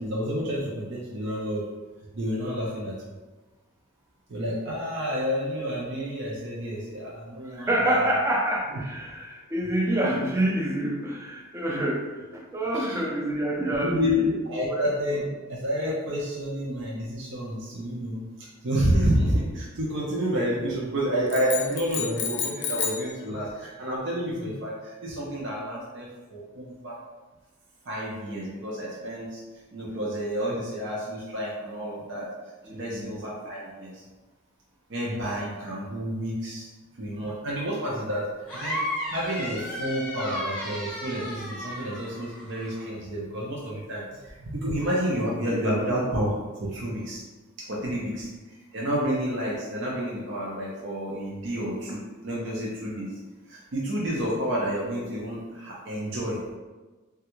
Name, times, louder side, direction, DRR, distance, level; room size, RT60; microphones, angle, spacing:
voice 1, 0.0-1.6 2.1-2.9 4.3-8.2 12.7-13.0 13.8-27.0 27.8-29.4 29.7-32.3 32.7-34.0 34.9-36.7 37.0-38.8 39.1-46.3 46.6-47.2 47.6-48.3 48.7-53.1 53.5-56.4, equal, 55° right, -5 dB, 0.6 m, -29 dB
voice 2, 7.4-14.2 14.7-15.2 32.6-33.2 47.8-48.1, right 1 dB, 15° right, -2 dB, 0.5 m, -27 dB
sound 1, 21.3-23.1, left 6 dB, 55° left, 0.4 m, -30 dB
sound 2, 38.5-42.9, equal, 5° left, 0.8 m, -34 dB
3.2 x 2.3 x 3.0 m, 1.2 s
head